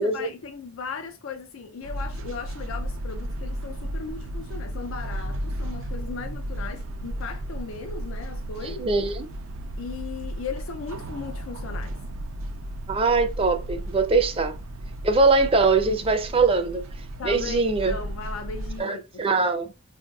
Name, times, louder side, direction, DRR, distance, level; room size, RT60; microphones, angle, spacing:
voice 1, 0.0-8.9 9.8-12.0 17.2-19.5, left 5 dB, 85° left, 0.4 m, -37 dB
sound 1, 1.8-18.8, right 1 dB, 85° right, 0.5 m, -34 dB
voice 2, 8.8-9.3 12.9-14.6 15.0-16.9 17.2-18.0 18.8-19.7, right 3 dB, 30° right, 0.4 m, -22 dB
4.4 x 2.7 x 2.3 m
head